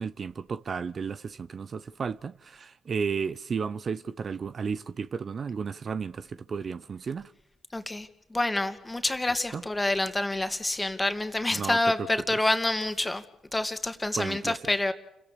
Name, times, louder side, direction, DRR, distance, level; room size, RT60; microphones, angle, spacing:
voice 1, 0.0-7.3 9.5-9.6 11.5-12.4 14.1-14.6, right 5 dB, 50° right, 0.8 m, -33 dB
voice 2, 7.7-13.2 13.5-14.9, left 2 dB, 15° left, 2.5 m, -27 dB
29.5 x 16.5 x 7.0 m
hypercardioid pair, 55°, 0 cm